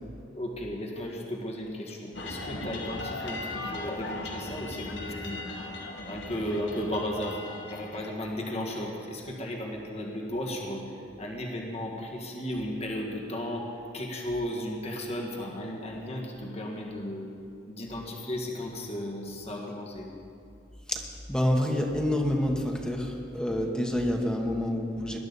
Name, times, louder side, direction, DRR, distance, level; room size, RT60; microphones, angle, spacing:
voice 1, 0.3-5.5 6.0-10.9 11.2-13.7 13.9-17.3 17.7-20.1, left 1 dB, 35° left, 0 dB, 1.7 m, -35 dB
sound 1, 2.1-8.1, left 2 dB, 75° left, 1.3 m, -38 dB
voice 2, 20.9-25.2, left 1 dB, 5° left, 1 dB, 1.3 m, -28 dB
20.0 x 11.5 x 4.1 m, 2.5 s
head